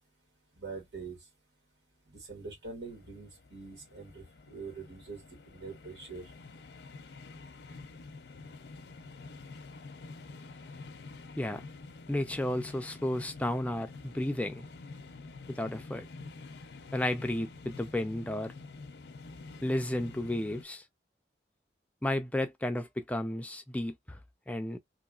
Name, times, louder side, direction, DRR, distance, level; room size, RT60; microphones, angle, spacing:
voice 1, 0.6-1.2 2.1-6.3, right 4 dB, 90° right, 1.9 m, -44 dB
sound 1, 2.8-20.6, left 3 dB, 75° left, 0.5 m, -48 dB
voice 2, 12.1-14.7 15.5-16.1 16.9-18.5 19.6-20.8 22.0-24.2 24.5-24.8, left 1 dB, 10° left, 0.3 m, -33 dB
3.0 x 2.9 x 2.4 m
head